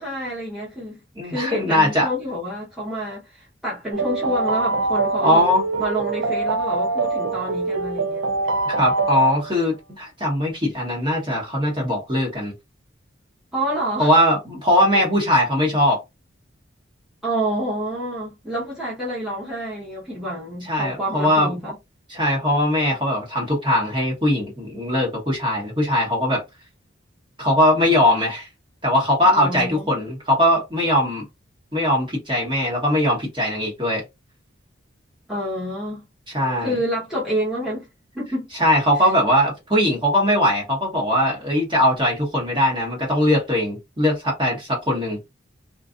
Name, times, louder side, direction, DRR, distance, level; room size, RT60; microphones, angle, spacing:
voice 1, 0.0-5.5 5.8-8.3 13.5-14.1 17.2-21.7 29.2-29.9 35.3-36.1 36.6-37.9 38.1-38.5 39.0-39.1, right 1 dB, 5° right, 0.9 m, -28 dB
voice 2, 1.2-2.1 5.2-5.6 8.7-12.5 14.0-16.0 20.7-21.5 22.1-26.4 27.4-28.5 28.8-31.2 31.7-34.0 36.3-36.7 38.6-45.2, equal, 25° right, 1.1 m, -20 dB
sound 1, 3.9-9.6, right 3 dB, 75° right, 0.5 m, -24 dB
2.5 x 2.4 x 2.4 m
head